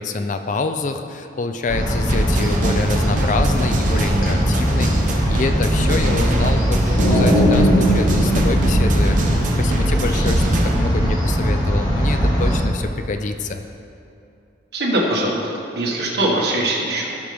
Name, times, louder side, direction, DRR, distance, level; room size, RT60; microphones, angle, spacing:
voice 1, 0.0-13.7, left 3 dB, 40° left, 7 dB, 0.4 m, -26 dB
sound 1, 1.7-12.6, equal, 20° left, 2.0 m, -20 dB
sound 2, 2.1-10.8, right 1 dB, 45° right, 0.9 m, -24 dB
sound 3, 7.0-9.8, equal, 75° left, 1.5 m, -19 dB
voice 2, 14.7-15.4 15.8-17.2, right 1 dB, 60° right, -3 dB, 1.8 m, -21 dB
15.5 x 6.0 x 3.5 m, 2.6 s
head